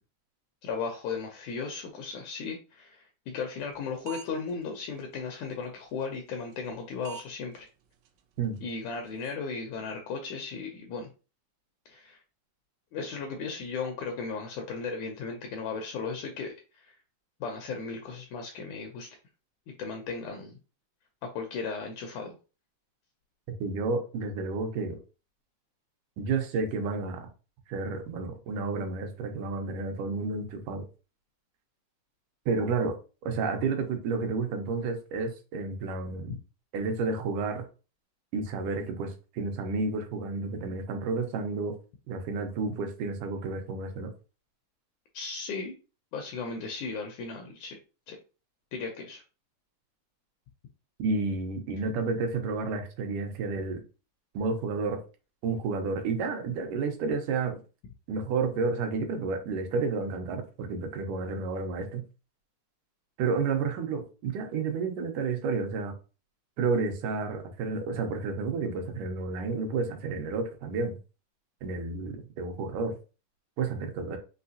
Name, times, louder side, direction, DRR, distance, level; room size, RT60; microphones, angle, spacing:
voice 1, 0.6-7.7 8.6-11.1 11.9-12.2 12.9-16.9 17.4-19.1 19.8-20.6 21.2-22.4 45.1-45.7 46.1-47.8 48.1-48.2 48.7-49.2, left 5 dB, 80° left, 3 dB, 1.8 m, -36 dB
sound 1, 3.7-3.8 4.1-4.5 5.0-5.1 6.5-6.7 7.0-7.2 7.5-7.6 8.1-8.2 8.6-8.7 8.9-9.3, right 6 dB, 90° right, 2.4 m, -43 dB
voice 2, 23.6-25.0 26.2-27.3 27.7-30.8 32.5-32.9 33.3-36.3 36.7-37.6 38.3-41.7 42.1-44.1 51.0-53.8 54.3-55.0 55.4-57.6 58.1-62.0 63.2-65.9 66.6-71.0 71.6-73.0 73.6-74.2, right 4 dB, 75° right, 4 dB, 2.2 m, -31 dB
5.7 x 3.0 x 2.7 m, 0.33 s
omnidirectional pair, 4.0 m